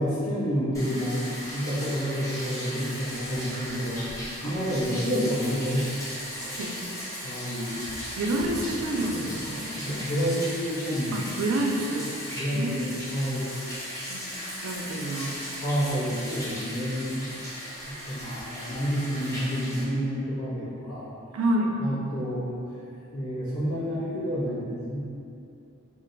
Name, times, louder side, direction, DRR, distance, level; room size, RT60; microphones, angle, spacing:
voice 1, 0.0-6.1 7.2-7.8 9.7-11.2 12.3-13.5 15.4-17.4 17.8-21.1 21.8-22.6 23.1-25.0, equal, 85° left, -9 dB, 1.0 m, -29 dB
Bathtub (filling or washing), 0.7-19.8, equal, 15° left, 0.7 m, -37 dB
voice 2, 6.4-6.8 8.2-9.7 11.1-12.1 12.5-13.0 14.1-14.3 14.6-15.4 21.3-21.8, right 1 dB, 80° right, 0 dB, 0.4 m, -29 dB
2.5 x 2.2 x 3.7 m, 2.6 s
head